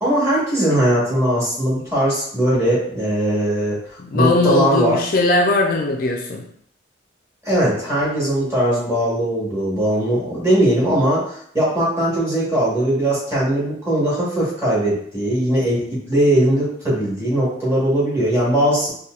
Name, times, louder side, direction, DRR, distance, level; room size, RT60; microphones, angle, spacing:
voice 1, 0.0-3.8 4.1-5.0 7.4-18.9, right 1 dB, 15° right, -8 dB, 1.3 m, -19 dB
voice 2, 4.0-6.4, left 2 dB, 50° left, 1 dB, 0.4 m, -19 dB
4.0 x 2.3 x 2.4 m, 0.65 s
head